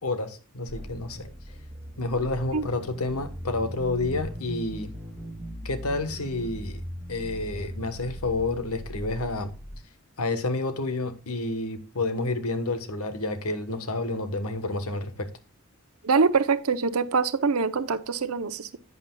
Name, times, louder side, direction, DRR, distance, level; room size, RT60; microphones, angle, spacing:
voice 1, 0.0-1.3 2.0-4.9 5.6-6.8 7.1-9.5 10.2-15.3, left 2 dB, 90° left, 1.2 m, -29 dB
sound 1, 0.7-9.8, equal, 10° right, 3.5 m, -39 dB
voice 2, 16.0-18.8, right 5 dB, 85° right, 0.7 m, -24 dB
11.0 x 8.3 x 2.3 m
head